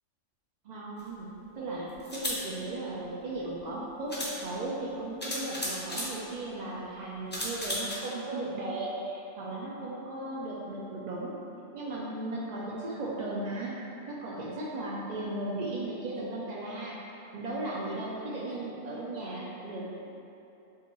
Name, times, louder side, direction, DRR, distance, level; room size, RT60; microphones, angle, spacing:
voice 1, 0.7-1.3 1.6-11.4 11.7-13.7 14.1-17.0 17.3-19.8, right 2 dB, 65° right, -6 dB, 0.4 m, -36 dB
sound 1, 1.0-1.1 2.0-2.4 3.6-3.7 4.1-4.4 5.2-6.1 7.3-8.0, left 1 dB, 15° left, 0.4 m, -34 dB
6.7 x 2.5 x 3.0 m, 2.8 s
omnidirectional pair, 1.3 m